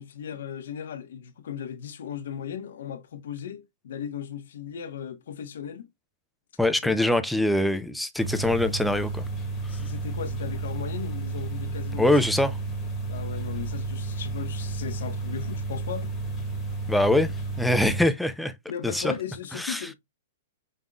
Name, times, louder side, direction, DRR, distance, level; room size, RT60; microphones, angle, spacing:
voice 1, 0.0-5.9 6.8-6.9 9.7-12.2 13.1-16.1 18.7-19.9, left 8 dB, 70° left, 1.0 m, -37 dB
voice 2, 6.6-9.2 9.7-9.8 12.0-12.6 16.9-17.3 17.6-18.5 18.8-19.1 19.5-19.9, left 1 dB, ahead, 0.4 m, -23 dB
sound 1, 8.2-18.0, right 3 dB, 20° left, 1.3 m, -32 dB
5.4 x 3.7 x 2.2 m
hypercardioid pair, 165°, 0 cm